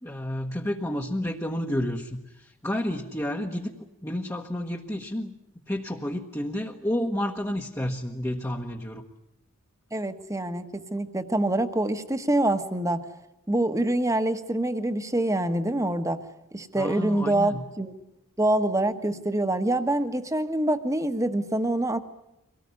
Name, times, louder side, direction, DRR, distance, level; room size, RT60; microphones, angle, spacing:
voice 1, 0.0-3.7 4.0-5.3 5.7-9.0 16.7-17.7, left 1 dB, 15° left, -1 dB, 1.3 m, -30 dB
voice 2, 9.9-13.0 13.5-16.2 16.5-17.9 18.4-22.0, right 1 dB, 15° right, 9 dB, 1.4 m, -25 dB
24.0 x 18.5 x 9.6 m, 0.89 s
head